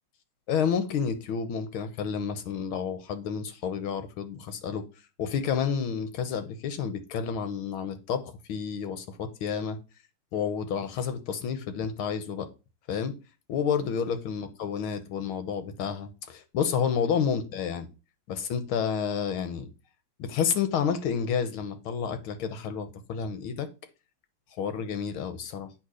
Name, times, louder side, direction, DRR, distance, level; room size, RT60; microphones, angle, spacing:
voice 1, 0.5-4.9 5.2-9.8 10.3-12.5 12.9-13.2 13.5-17.9 18.3-19.7 20.2-23.7 24.6-25.7, left 7 dB, 75° left, 1.8 m, -30 dB
8.5 x 3.0 x 6.3 m
omnidirectional pair, 2.4 m